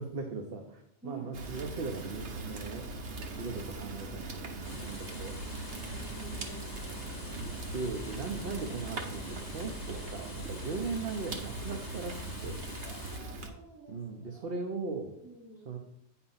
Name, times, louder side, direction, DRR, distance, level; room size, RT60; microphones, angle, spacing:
voice 1, 0.0-2.9 3.4-5.3 6.1-6.5 7.4-12.6 13.9-15.1 15.7-15.8, right 4 dB, 60° right, 3 dB, 1.0 m, -39 dB
voice 2, 1.0-1.4 5.8-7.1 12.8-14.6 15.2-15.8, right 3 dB, 5° left, -6 dB, 2.2 m, -50 dB
Fire, 1.3-13.5, right 2 dB, 85° right, 1.4 m, -40 dB
sound 1, 4.6-13.2, left 3 dB, 40° left, 1.2 m, -48 dB
8.9 x 4.3 x 5.6 m, 0.77 s
omnidirectional pair, 1.1 m